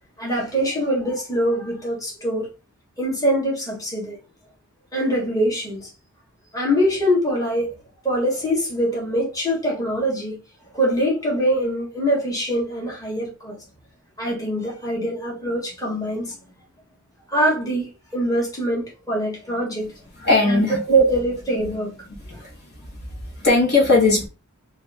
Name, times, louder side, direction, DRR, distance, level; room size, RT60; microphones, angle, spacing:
voice 1, 0.2-2.5 3.0-4.2 4.9-5.9 6.5-7.7 8.0-10.4 10.7-13.6 14.2-16.4 17.3-19.9 20.4-20.6 20.9-22.2, right 1 dB, 15° left, 1.3 m, -23 dB
voice 2, 20.2-20.8 22.3-23.0 23.4-24.3, left 3 dB, 50° left, 1.4 m, -19 dB
3.4 x 2.5 x 3.4 m
head